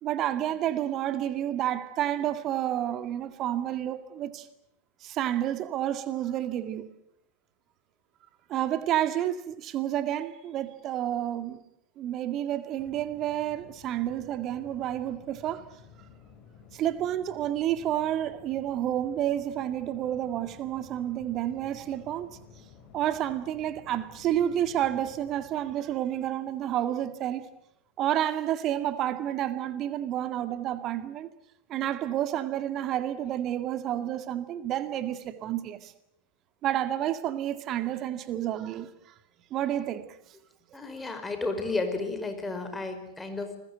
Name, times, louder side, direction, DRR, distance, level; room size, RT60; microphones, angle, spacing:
voice 1, 0.0-4.5 5.0-6.9 8.5-11.6 12.0-15.6 16.7-22.3 22.9-27.5 28.0-31.3 31.7-35.9 36.6-38.9 39.5-40.2, right 11 dB, 35° right, 2.0 m, -30 dB
sound 1, 12.8-27.2, left 6 dB, 35° left, 6.6 m, -53 dB
voice 2, 40.7-43.6, left 3 dB, 10° left, 5.0 m, -32 dB
28.5 x 21.5 x 8.0 m
figure-of-eight pair, 90°, 0 cm